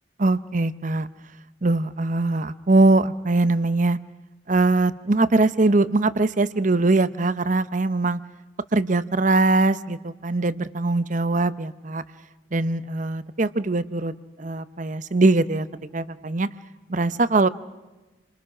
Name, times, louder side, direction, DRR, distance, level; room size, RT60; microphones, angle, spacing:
voice 1, 0.2-1.1 1.6-4.0 4.5-8.2 8.7-12.0 12.5-14.1 14.4-15.7 15.9-16.5 16.9-17.5, right 2 dB, 45° right, 14 dB, 0.8 m, -21 dB
29.0 x 25.0 x 6.1 m, 1.1 s
head